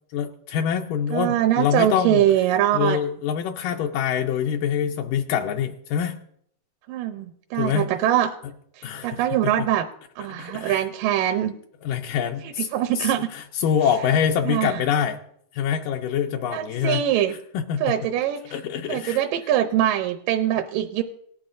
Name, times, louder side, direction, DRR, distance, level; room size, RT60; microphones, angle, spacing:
voice 1, 0.1-2.2 2.7-6.2 7.6-7.9 8.8-9.7 10.3-10.8 11.8-12.7 13.0-15.2 15.5-17.0 17.5-17.9 18.5-19.2, left 8 dB, 80° left, 2 dB, 2.2 m, -25 dB
voice 2, 1.1-3.0 6.9-8.3 8.8-9.9 10.2-11.5 12.4-13.3 14.5-14.8 16.5-17.4 17.8-18.6 18.9-21.0, right 11 dB, 85° right, 6 dB, 2.3 m, -23 dB
18.5 x 11.5 x 2.6 m, 0.67 s
omnidirectional pair, 3.8 m